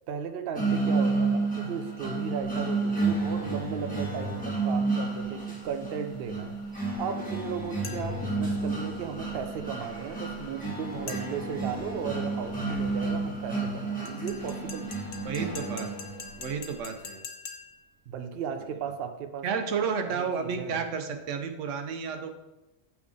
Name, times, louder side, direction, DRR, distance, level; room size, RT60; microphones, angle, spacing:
voice 1, 0.1-15.0 18.1-19.5 20.0-20.8, right 7 dB, 60° right, 7 dB, 0.7 m, -36 dB
sound 1, 0.6-16.5, right 3 dB, 5° left, 1.3 m, -31 dB
sound 2, 7.8-8.3 11.1-11.6 14.1-17.9, left 5 dB, 70° left, 1.0 m, -44 dB
voice 2, 15.2-15.9 16.4-17.3 19.4-22.3, right 6 dB, 80° right, 7 dB, 1.0 m, -31 dB
8.1 x 3.6 x 3.7 m, 1.0 s
omnidirectional pair, 1.3 m